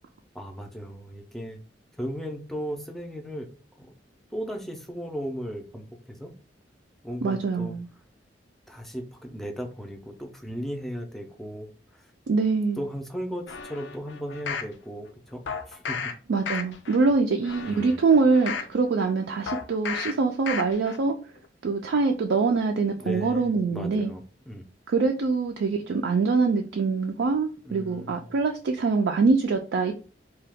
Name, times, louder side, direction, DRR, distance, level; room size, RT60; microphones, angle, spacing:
voice 1, 0.3-1.6 2.0-3.5 3.8-3.9 4.3-6.3 7.0-7.8 8.7-12.1 12.8-16.1 17.6-18.0 23.0-24.6 27.6-28.3, equal, ahead, 0.4 m, -36 dB
voice 2, 7.2-7.9 12.3-12.8 16.3-21.2 21.6-24.1 24.9-29.9, right 4 dB, 75° right, 0.4 m, -24 dB
sound 1, 13.5-14.7 15.5-16.1 16.4-17.0 17.4-18.7 19.5-20.1 20.5-21.0 21.4-21.5, left 6 dB, 80° left, 0.4 m, -33 dB
2.8 x 2.2 x 3.4 m
head